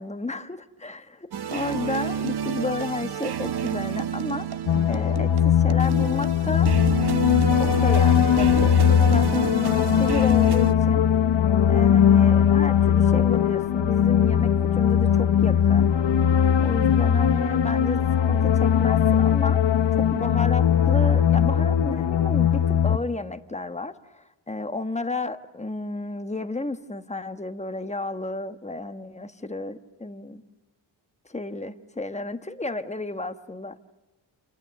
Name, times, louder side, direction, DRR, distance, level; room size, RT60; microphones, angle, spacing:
voice 1, 0.0-4.6 4.9-6.7 7.6-11.0 11.7-15.9 16.6-18.0 18.3-19.6 19.9-30.4 31.3-33.7, left 2 dB, 15° left, 9 dB, 1.2 m, -32 dB
sound 1, 1.3-10.7, right 8 dB, 55° right, 1.2 m, -30 dB
sound 2, 4.7-23.0, left 9 dB, 70° left, 1.1 m, -20 dB
29.5 x 29.0 x 6.5 m, 1.1 s
wide cardioid pair, 160°, 46 cm